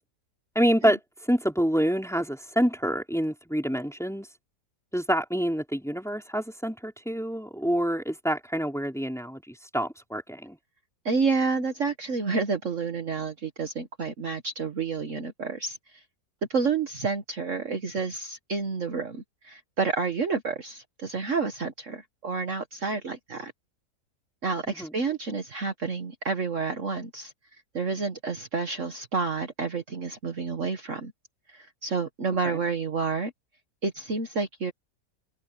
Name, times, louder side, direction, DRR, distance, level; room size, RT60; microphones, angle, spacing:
voice 1, 0.5-1.0 1.3-4.3 4.9-10.6 24.7-24.9 32.5-32.6, equal, ahead, 3.3 m, -27 dB
voice 2, 11.0-16.0 16.5-23.5 24.4-27.3 27.7-31.1 31.5-33.3 33.8-34.7, right 4 dB, 50° right, 1.7 m, -29 dB
omnidirectional pair, 1.8 m